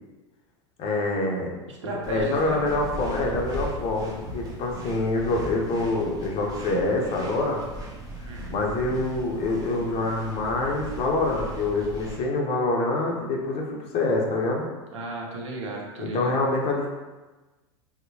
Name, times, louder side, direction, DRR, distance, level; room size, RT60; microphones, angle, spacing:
voice 1, 0.8-1.5 2.1-7.6 8.2-14.7 16.0-16.9, left 2 dB, 40° left, 0 dB, 0.6 m, -26 dB
voice 2, 1.7-2.6 8.2-8.5 14.9-16.4, right 2 dB, 80° right, -1 dB, 0.6 m, -35 dB
sound 1, 2.0-12.2, right 1 dB, 25° right, 0.6 m, -38 dB
2.7 x 2.0 x 2.7 m, 1.2 s
hypercardioid pair, 95°, 15 cm